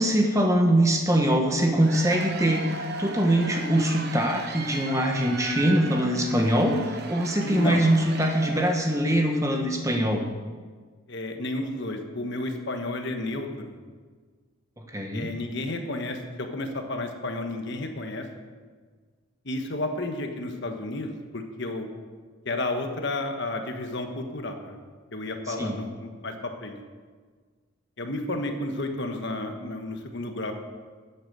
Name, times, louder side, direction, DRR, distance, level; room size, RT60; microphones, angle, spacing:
voice 1, 0.0-10.2 14.9-15.3 25.6-25.8, right 1 dB, 15° right, 2 dB, 1.3 m, -23 dB
Cheering / Applause / Crowd, 1.6-9.3, right 3 dB, 50° right, 1.1 m, -37 dB
voice 2, 7.4-7.8 11.1-13.8 15.1-18.2 19.4-21.9 22.4-24.8 25.1-26.8 28.0-30.5, left 2 dB, 55° left, 5 dB, 1.3 m, -32 dB
11.5 x 8.4 x 6.8 m, 1.5 s
head